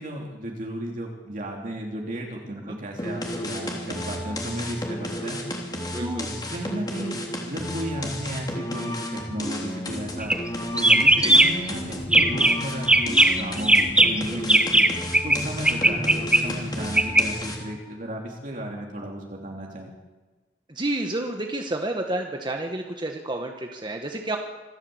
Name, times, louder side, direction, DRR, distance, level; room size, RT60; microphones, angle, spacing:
voice 1, 0.0-5.4 6.0-10.3 10.7-14.9 15.2-19.9, equal, 50° right, -1 dB, 3.3 m, -34 dB
sound 1, 3.0-17.8, left 1 dB, 25° left, 3.4 m, -33 dB
voice 2, 5.9-6.3 11.1-11.3 16.8-16.9 20.7-24.4, right 2 dB, 25° right, 3 dB, 1.5 m, -30 dB
sound 2, 10.2-10.5 10.8-11.7 12.0-12.6 12.9-15.4 15.6-17.2, right 1 dB, 5° right, 1.0 m, -18 dB
26.0 x 12.5 x 8.0 m, 1.3 s
head